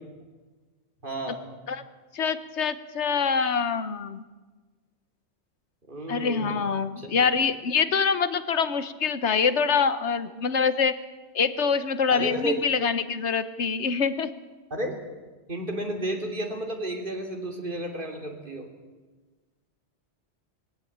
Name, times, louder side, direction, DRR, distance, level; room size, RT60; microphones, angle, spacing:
voice 1, 1.0-1.5 5.9-6.6 7.0-7.3 12.1-12.6 14.7-15.0 15.5-18.7, right 1 dB, 45° right, 3 dB, 3.2 m, -32 dB
voice 2, 2.1-4.2 6.1-10.9 11.3-14.3, left 6 dB, 70° left, 12 dB, 1.3 m, -25 dB
20.5 x 17.0 x 8.7 m, 1.3 s
omnidirectional pair, 1.2 m